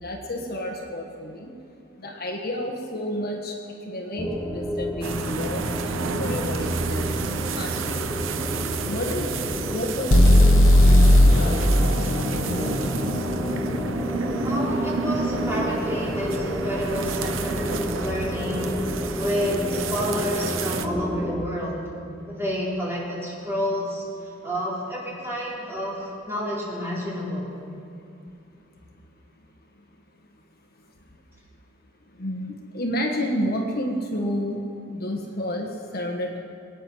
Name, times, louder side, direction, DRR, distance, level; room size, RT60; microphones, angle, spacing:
voice 1, 0.0-1.5 2.0-3.5 3.8-7.1 7.5-8.0 8.9-9.3 9.7-10.5 11.3-11.9 12.3-12.8 32.2-34.6 34.9-36.4, left 1 dB, 50° left, 2 dB, 1.5 m, -30 dB
sound 1, 4.2-21.4, equal, 5° left, 0.9 m, -31 dB
sound 2, 5.0-20.9, right 4 dB, 75° right, 0.8 m, -30 dB
sound 3, 10.1-14.0, left 1 dB, 75° left, 1.1 m, -17 dB
voice 2, 14.4-18.7 19.2-21.8 22.3-24.0 24.4-27.4, equal, 15° right, -6 dB, 4.0 m, -29 dB
23.0 x 9.3 x 6.2 m, 2.5 s
head